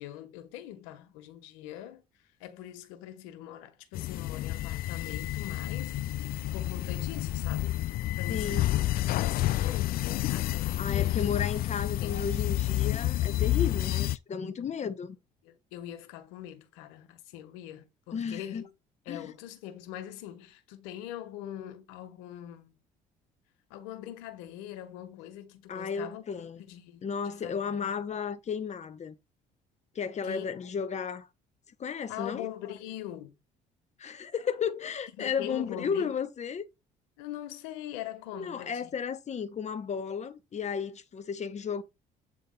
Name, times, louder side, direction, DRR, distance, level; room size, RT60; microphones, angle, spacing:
voice 1, 0.0-2.0 2.4-7.9 8.1-8.8 9.1-11.3 12.0-12.2 15.4-18.7 19.0-22.7 23.7-26.2 26.6-28.0 30.2-30.5 32.1-33.4 35.2-36.2 37.2-38.9, left 12 dB, 90° left, 1.6 m, -42 dB
sound 1, 3.9-14.2, left 15 dB, 65° left, 0.5 m, -29 dB
voice 2, 8.3-8.8 10.8-15.2 18.1-18.6 19.1-19.3 25.7-26.6 27.0-29.2 29.9-31.3 31.8-32.5 34.0-36.7 38.3-41.8, left 6 dB, 45° left, 1.3 m, -33 dB
8.7 x 3.5 x 4.0 m
supercardioid pair, 75°, 17 cm